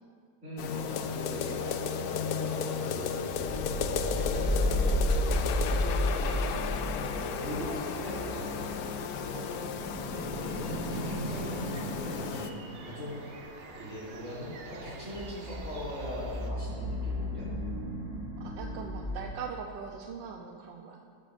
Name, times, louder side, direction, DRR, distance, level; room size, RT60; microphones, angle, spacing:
voice 1, 0.4-3.3 3.6-6.6 7.0-8.7 10.0-12.5 12.8-13.4 13.7-17.5, equal, 40° right, -9 dB, 2.9 m, -41 dB
sound 1, 0.6-12.5, left 7 dB, 70° left, 0.9 m, -34 dB
sound 2, 1.5-19.3, left 1 dB, 10° right, 1.1 m, -34 dB
sound 3, 10.9-16.5, right 4 dB, 60° right, 0.6 m, -50 dB
voice 2, 18.4-21.0, right 6 dB, 85° right, 2 dB, 1.4 m, -41 dB
14.5 x 12.5 x 2.5 m, 2.3 s
omnidirectional pair, 2.0 m